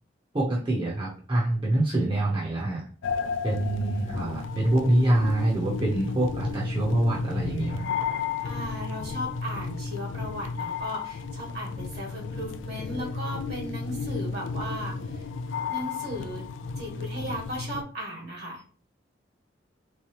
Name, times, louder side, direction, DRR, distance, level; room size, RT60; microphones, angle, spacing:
voice 1, 0.3-2.8 3.4-7.9, right 1 dB, 30° right, -4 dB, 0.8 m, -25 dB
sound 1, 3.0-17.8, left 5 dB, 80° left, 0.4 m, -33 dB
voice 2, 8.4-14.9 15.7-16.4 16.8-18.6, equal, 60° right, -2 dB, 1.6 m, -36 dB
3.6 x 3.2 x 2.9 m, 0.41 s
head